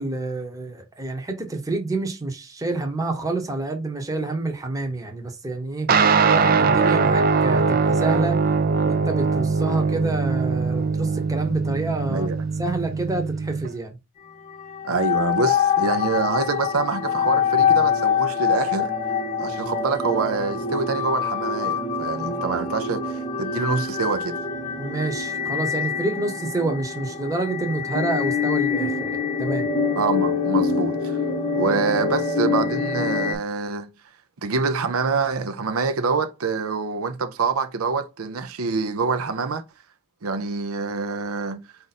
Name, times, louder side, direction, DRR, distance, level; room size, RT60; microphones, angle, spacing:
voice 1, 0.0-5.9 6.2-8.4 8.8-12.3 12.6-13.9 24.8-29.7, right 2 dB, 15° right, 0.8 m, -28 dB
sound 1, 5.9-13.7, right 4 dB, 40° right, 0.4 m, -21 dB
voice 2, 12.1-12.4 14.8-18.9 19.4-24.4 30.0-31.2 31.5-33.9 34.4-39.6 40.2-41.7, right 4 dB, 85° right, 0.6 m, -26 dB
sound 2, 14.5-33.3, left 6 dB, 35° left, 0.8 m, -25 dB
4.9 x 2.7 x 4.1 m
head